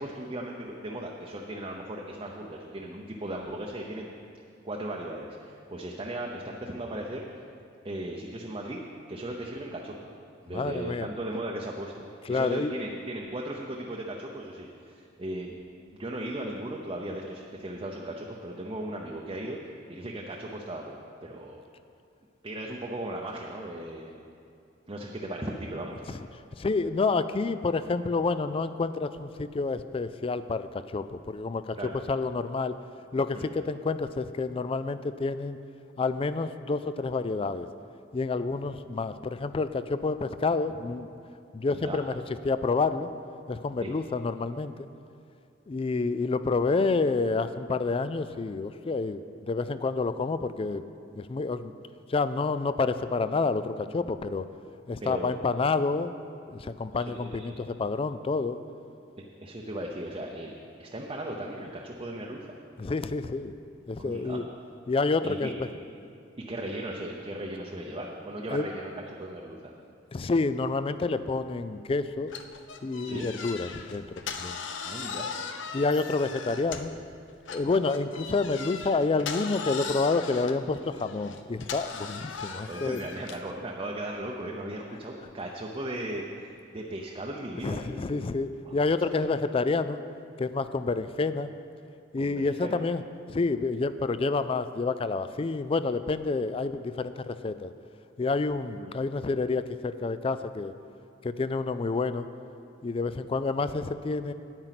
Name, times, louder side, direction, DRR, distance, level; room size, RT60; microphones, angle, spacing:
voice 1, 0.0-4.1 4.6-7.2 7.8-8.8 9.1-10.0 10.4-15.5 15.9-19.6 19.9-21.6 22.4-24.2 24.9-26.2 31.8-32.0 33.3-33.5 41.7-42.0 43.8-43.9 55.0-55.3 56.9-57.6 59.4-60.5 60.8-62.5 64.0-64.4 65.2-65.5 66.5-69.7 73.0-73.3 74.8-75.3 82.7-86.3 86.7-87.8 88.7-88.8 89.1-89.2 92.2-92.8 98.8-98.9, right 1 dB, 25° right, -1 dB, 0.7 m, -37 dB
voice 2, 10.5-11.1 12.3-12.7 26.6-31.8 32.1-32.7 33.1-35.6 36.0-37.7 38.1-41.1 41.5-42.1 42.4-43.1 43.5-44.9 45.7-50.8 51.2-51.7 52.1-54.5 54.9-56.1 56.5-58.6 62.8-63.5 63.9-64.4 64.9-65.7 68.5-68.7 70.1-72.3 72.8-74.6 75.7-77.0 77.5-83.0 87.4-90.0 90.4-91.5 92.1-93.0 93.3-97.7 98.2-100.7 101.2-102.3 102.8-104.3, left 3 dB, 30° left, 13 dB, 0.3 m, -29 dB
sound 1, 72.3-77.0 77.5-83.5, left 5 dB, 75° left, 0.6 m, -38 dB
9.5 x 8.9 x 5.9 m, 2.5 s
head